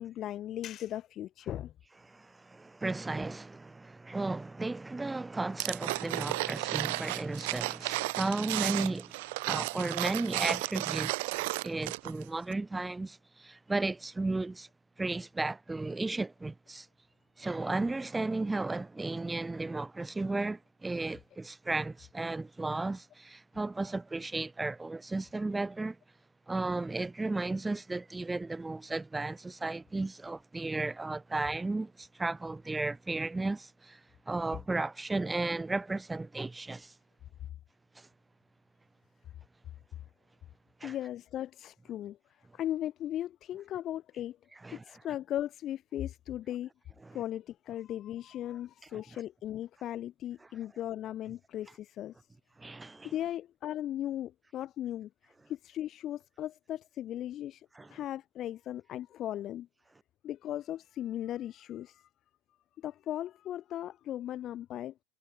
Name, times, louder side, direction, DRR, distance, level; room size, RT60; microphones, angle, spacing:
voice 1, 0.0-1.7 40.8-42.2 42.5-44.4 44.7-46.7 47.1-52.1 53.0-55.1 55.5-59.7 60.2-62.1 62.8-64.9, left 12 dB, 35° left, 1.1 m, -37 dB
voice 2, 2.1-9.1 9.5-14.7 15.0-16.9 17.4-26.0 26.5-34.0 34.3-36.9 38.0-38.1 40.8-40.9 44.6-44.8 47.0-47.2 48.9-49.0 52.6-53.1 57.8-57.9, right 2 dB, 10° right, 1.1 m, -34 dB
sound 1, 5.6-12.2 12.5-12.6, right 24 dB, 55° right, 4.3 m, -33 dB
figure-of-eight pair, 85°, 0 cm